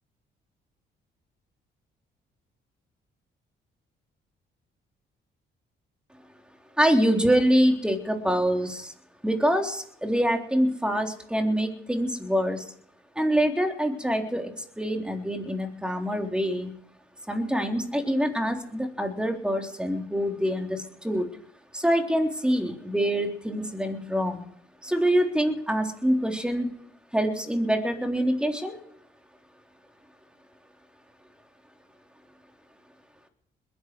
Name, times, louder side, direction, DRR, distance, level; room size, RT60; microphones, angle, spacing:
voice 1, 6.8-8.9 9.2-12.7 13.2-16.7 17.3-21.3 21.7-24.4 24.8-26.7 27.1-28.8, equal, 5° right, 3 dB, 3.7 m, -25 dB
21.5 x 11.5 x 4.8 m, 0.67 s
cardioid pair, 90°, 20 cm